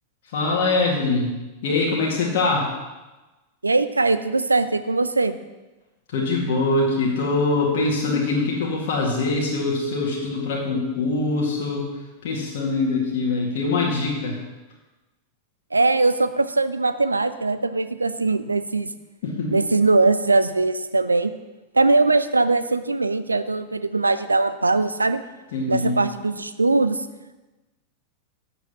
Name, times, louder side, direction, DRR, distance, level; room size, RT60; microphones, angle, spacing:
voice 1, 0.3-1.3 1.6-2.7 6.1-11.9 12.2-14.4 19.2-19.5 25.5-26.0, left 3 dB, 55° left, -3 dB, 2.0 m, -23 dB
voice 2, 3.6-5.4 15.7-18.9 19.5-21.3 21.7-25.2 25.7-27.1, right 3 dB, 80° right, 12 dB, 0.5 m, -21 dB
8.1 x 7.2 x 6.1 m, 1.1 s
figure-of-eight pair, 90°, 0 cm